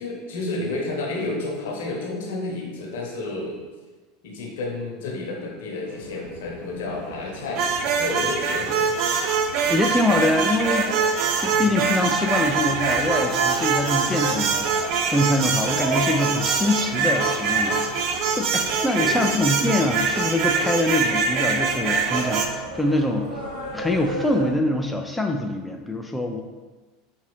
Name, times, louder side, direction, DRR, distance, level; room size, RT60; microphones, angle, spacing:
voice 1, 0.0-3.6 4.2-8.9 11.5-11.7 19.0-19.4, left 2 dB, 70° left, -1 dB, 1.0 m, -31 dB
sound 1, 5.9-24.5, right 1 dB, 80° right, 1.0 m, -36 dB
sound 2, 7.6-22.5, right 5 dB, 55° right, 0.5 m, -24 dB
voice 2, 9.6-10.9 11.4-23.3 23.7-26.4, left 1 dB, 5° left, 2 dB, 0.4 m, -24 dB
5.1 x 2.7 x 3.2 m, 1.3 s
hypercardioid pair, 85°, 0 cm